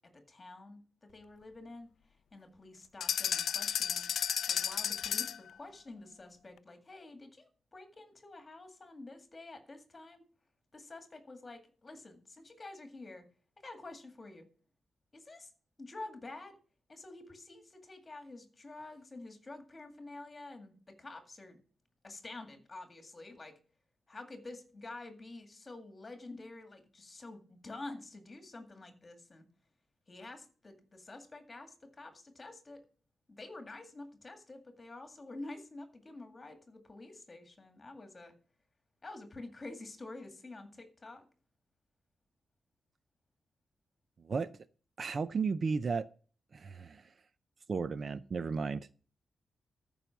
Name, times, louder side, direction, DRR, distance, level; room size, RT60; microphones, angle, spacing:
voice 1, 0.1-4.1 4.5-10.2 10.7-13.2 13.6-14.4 15.1-15.5 15.8-16.6 16.9-21.6 22.0-23.6 24.1-29.4 30.1-32.8 33.3-38.3 39.0-41.3, left 2 dB, 25° left, 2.0 m, -49 dB
sound 1, 3.0-5.5, left 9 dB, 75° left, 0.4 m, -33 dB
voice 2, 45.0-46.1 46.5-47.1 47.7-48.9, right 5 dB, 40° right, 0.4 m, -34 dB
13.5 x 5.5 x 5.9 m
wide cardioid pair, 160°, 0 cm